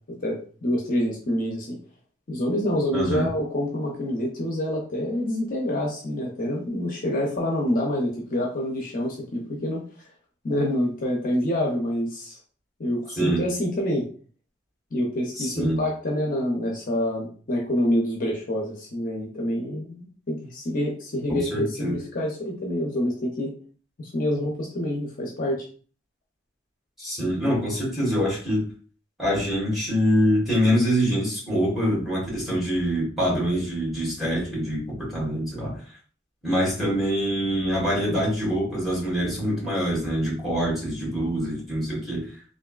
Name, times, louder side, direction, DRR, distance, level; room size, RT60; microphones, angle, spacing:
voice 1, 0.2-1.8 2.3-9.8 10.4-12.4 12.8-14.1 14.9-23.5 24.0-25.7, left 1 dB, 45° left, -1 dB, 0.7 m, -27 dB
voice 2, 2.9-3.3 13.1-13.4 15.4-15.8 21.3-22.0 27.0-28.6 29.2-35.8 36.4-42.2, equal, ahead, -6 dB, 1.5 m, -25 dB
3.4 x 2.6 x 2.3 m, 0.41 s
head